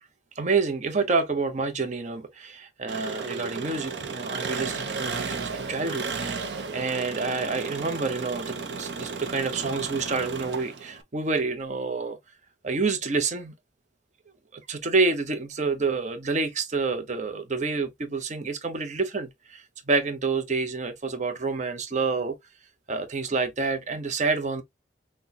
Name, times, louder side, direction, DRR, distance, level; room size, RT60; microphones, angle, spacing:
voice 1, 0.4-6.5 6.7-12.2 12.6-13.5 14.5-22.4 22.9-24.6, right 4 dB, 40° right, 0.7 m, -28 dB
Engine, 2.9-11.0, right 4 dB, 75° right, 0.7 m, -34 dB
5.9 x 2.2 x 2.7 m
head